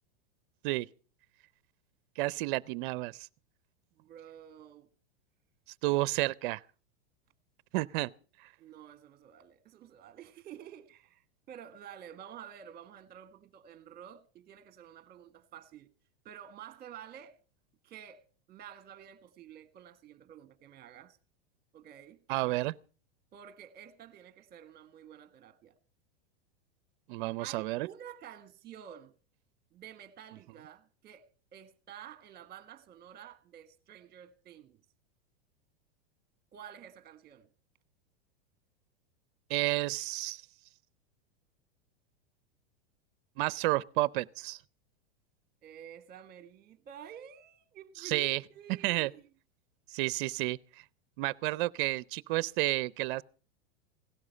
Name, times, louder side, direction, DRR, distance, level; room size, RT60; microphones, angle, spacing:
voice 1, 2.2-3.3 5.8-6.6 7.7-8.1 22.3-22.7 27.1-27.9 39.5-40.4 43.4-44.6 48.0-48.4 48.8-49.1 49.9-50.6 51.2-53.2, right 19 dB, 55° right, 0.6 m, -31 dB
voice 2, 4.0-4.9 8.6-15.9 16.2-17.4 17.8-21.2 21.7-22.2 23.3-25.7 27.4-29.1 29.7-31.2 31.5-34.8 36.5-37.5 45.6-49.2, right 9 dB, 30° right, 1.6 m, -50 dB
17.0 x 12.0 x 5.5 m
hypercardioid pair, 125°, 30 cm